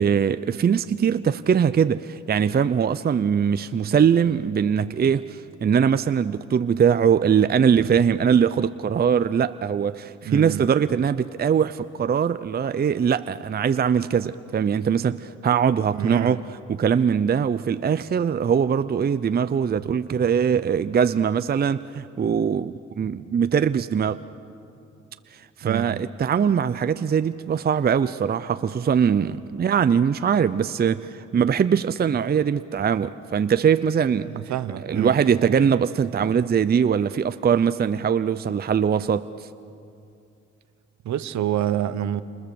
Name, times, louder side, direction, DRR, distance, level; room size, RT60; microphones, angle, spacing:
voice 1, 0.0-16.4 16.7-24.2 25.6-34.3 34.9-39.3, right 7 dB, 30° right, 0.6 m, -21 dB
voice 2, 10.2-10.7 15.9-16.4 25.6-26.0 34.3-35.2 41.0-42.2, right 11 dB, 65° right, 1.1 m, -27 dB
29.5 x 26.5 x 7.0 m
cardioid pair, 90°, 30 cm